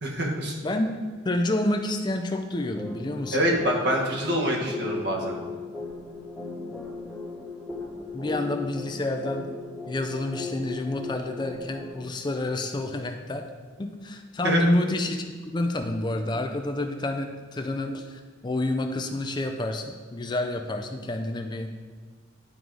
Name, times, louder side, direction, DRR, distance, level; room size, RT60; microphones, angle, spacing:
voice 1, 0.0-0.5 3.3-5.4 14.4-14.6, equal, 60° right, -1 dB, 1.4 m, -25 dB
voice 2, 0.6-3.4 8.1-9.5 9.9-13.5 13.8-15.2 15.5-21.8, left 1 dB, 25° left, 5 dB, 0.5 m, -29 dB
sound 1, 2.8-12.0, left 3 dB, ahead, 1.1 m, -37 dB
11.0 x 3.9 x 4.7 m, 1.5 s
head